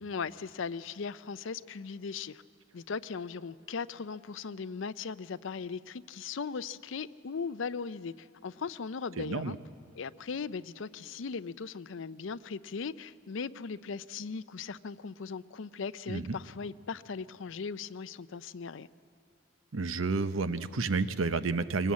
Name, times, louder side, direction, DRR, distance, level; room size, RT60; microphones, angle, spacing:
voice 1, 0.0-2.4 2.7-9.6 9.9-18.9, left 5 dB, 70° left, 16 dB, 0.5 m, -38 dB
voice 2, 9.2-9.6 16.1-16.4 19.7-21.9, right 4 dB, 80° right, 12 dB, 0.8 m, -30 dB
23.5 x 19.0 x 8.5 m, 2.4 s
head